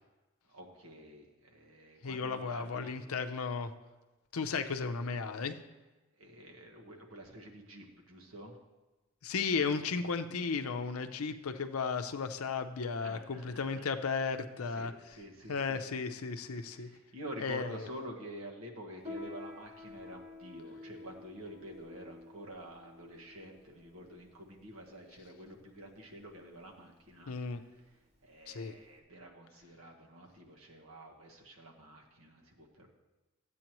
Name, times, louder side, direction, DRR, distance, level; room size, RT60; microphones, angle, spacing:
voice 1, 0.5-3.0 6.1-8.6 13.0-13.9 14.7-15.8 16.7-27.4 27.8-27.9 28.2-32.9, equal, 75° right, 1 dB, 1.5 m, -49 dB
voice 2, 2.0-3.7 4.3-5.6 9.2-14.9 15.5-16.9 17.4-17.9 27.3-27.6 28.5-28.7, left 5 dB, 85° left, 8 dB, 0.6 m, -34 dB
Piano, 19.0-29.0, left 2 dB, 30° right, 1.8 m, -50 dB
13.0 x 8.4 x 3.0 m, 1.1 s
head